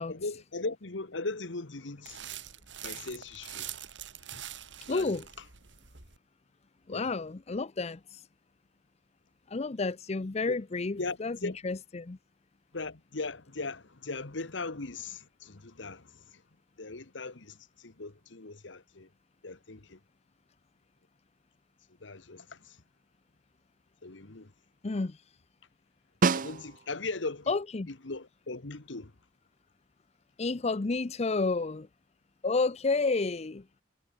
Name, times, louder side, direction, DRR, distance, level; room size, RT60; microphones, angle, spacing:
voice 1, 0.1-2.2 2.8-3.7 4.9-5.1 6.9-7.1 10.5-10.6 11.0-11.6 12.7-16.4 16.8-19.1 19.4-20.0 22.0-22.8 24.0-24.5 26.3-27.5 27.9-29.1, left 3 dB, 85° left, 1.5 m, -39 dB
sound 1, 2.1-6.2, right 11 dB, 75° right, 2.6 m, -44 dB
voice 2, 4.9-5.2 6.9-8.2 9.5-12.2 24.8-25.2 27.5-27.9 30.4-31.9 32.4-33.6, left 3 dB, 35° left, 0.6 m, -30 dB
Snare drum, 26.2-27.1 31.6-31.7, right 4 dB, 45° right, 0.6 m, -28 dB
head